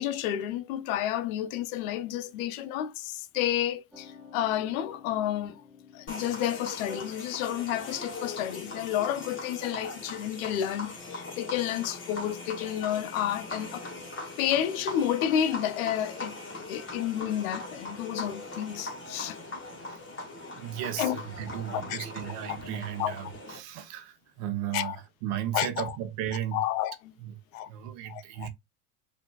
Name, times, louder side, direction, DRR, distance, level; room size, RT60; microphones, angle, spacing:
voice 1, 0.0-5.6 5.9-13.9 14.4-16.4 16.7-19.4 21.0-21.2 21.7-22.0 22.5-22.6 23.0-23.1 24.7-25.0 25.5-25.9 26.5-27.0 27.5-27.7 28.1-28.5, left 11 dB, 75° left, 0.7 m, -30 dB
sound 1, 3.9-14.1, left 4 dB, ahead, 0.9 m, -51 dB
sound 2, 6.1-23.6, left 2 dB, 25° left, 1.7 m, -40 dB
voice 2, 20.5-26.6 27.2-27.4 27.7-28.5, right 11 dB, 65° right, 0.9 m, -35 dB
4.9 x 2.7 x 2.3 m
hypercardioid pair, 90°, 43 cm